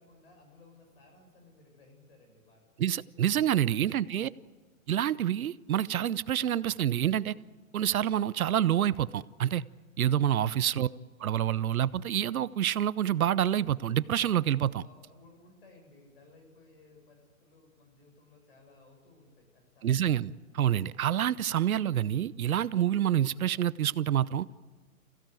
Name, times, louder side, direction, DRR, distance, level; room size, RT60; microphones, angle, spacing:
voice 1, 0.0-2.7 3.7-3.9 14.8-20.1, left 3 dB, 40° left, 3 dB, 7.0 m, -59 dB
voice 2, 2.8-4.3 4.9-7.3 7.7-9.6 10.0-10.9 11.2-14.8 19.8-24.5, right 10 dB, 80° right, 18 dB, 0.8 m, -27 dB
28.0 x 16.0 x 9.1 m, 1.4 s
hypercardioid pair, 180°, 42 cm